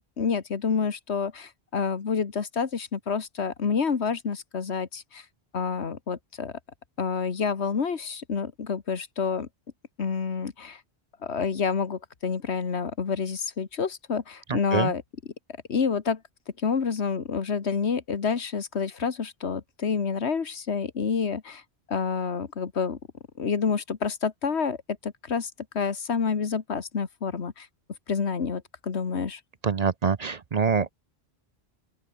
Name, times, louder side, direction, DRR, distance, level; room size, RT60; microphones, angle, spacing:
voice 1, 0.0-5.3 5.5-6.5 7.0-9.5 10.0-10.8 11.2-15.0 15.7-16.2 16.6-21.6 21.9-23.0 23.4-24.8 25.0-27.7 28.1-29.4, left 5 dB, 85° left, 1.8 m, -28 dB
voice 2, 14.5-14.9 29.6-30.9, right 5 dB, 45° right, 0.7 m, -25 dB
open air
omnidirectional pair, 1.1 m